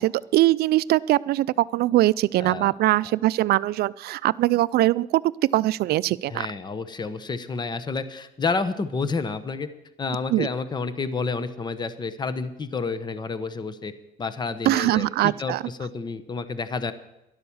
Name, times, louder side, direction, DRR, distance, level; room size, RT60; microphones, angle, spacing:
voice 1, 0.0-5.2 5.5-6.5 10.3-10.5 14.7-15.6, right 16 dB, 70° right, 18 dB, 0.4 m, -22 dB
voice 2, 2.4-2.7 3.0-3.1 6.3-9.7 10.0-13.9 14.2-16.9, left 4 dB, 25° left, 13 dB, 0.9 m, -30 dB
12.0 x 11.5 x 7.1 m, 0.89 s
cardioid pair, 110°, 17 cm